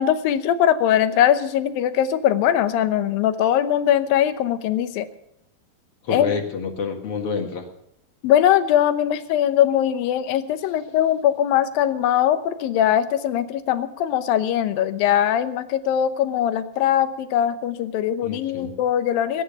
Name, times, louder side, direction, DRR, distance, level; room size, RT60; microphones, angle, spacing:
voice 1, 0.0-5.1 6.1-6.3 8.2-19.4, left 10 dB, 90° left, 11 dB, 2.7 m, -21 dB
voice 2, 6.0-7.7 18.2-18.7, left 5 dB, 50° left, 4 dB, 2.2 m, -28 dB
20.0 x 9.7 x 6.9 m, 0.79 s
omnidirectional pair, 4.0 m